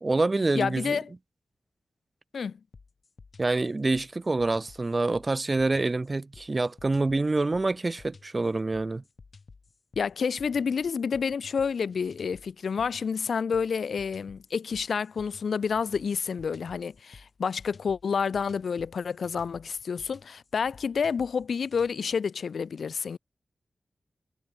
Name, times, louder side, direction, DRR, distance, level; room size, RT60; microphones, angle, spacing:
voice 1, 0.0-1.0 3.4-9.0, right 3 dB, 25° right, 0.4 m, -26 dB
voice 2, 0.5-1.1 2.3-2.6 10.0-23.2, left 6 dB, 75° left, 0.7 m, -29 dB
sound 1, 2.7-21.9, left 4 dB, 45° left, 6.2 m, -53 dB
wide cardioid pair, 160°, 0 cm